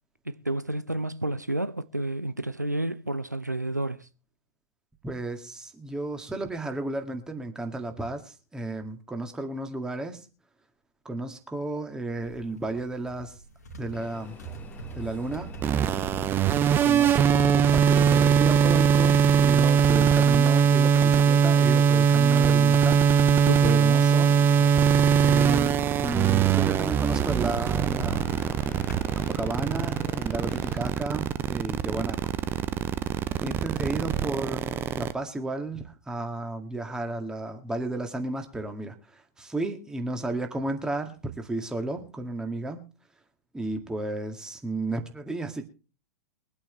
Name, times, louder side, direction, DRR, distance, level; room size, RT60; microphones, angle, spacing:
voice 1, 0.3-4.1 23.5-23.7, right 1 dB, 90° right, 0.6 m, -30 dB
voice 2, 5.0-10.3 11.1-13.4 13.8-14.4 14.9-15.5 16.8-23.1 23.6-24.4 25.2-28.3 29.2-32.3 33.4-42.8 43.5-45.7, right 2 dB, 5° right, 2.0 m, -33 dB
sound 1, 12.1-22.9 23.2-24.0 24.4-29.1, right 5 dB, 70° left, 2.4 m, -41 dB
sound 2, 13.9-30.8, left 5 dB, 15° left, 1.5 m, -44 dB
sound 3, 15.6-35.1, right 7 dB, 25° right, 0.7 m, -21 dB
22.5 x 8.7 x 3.2 m
figure-of-eight pair, 95°, 9 cm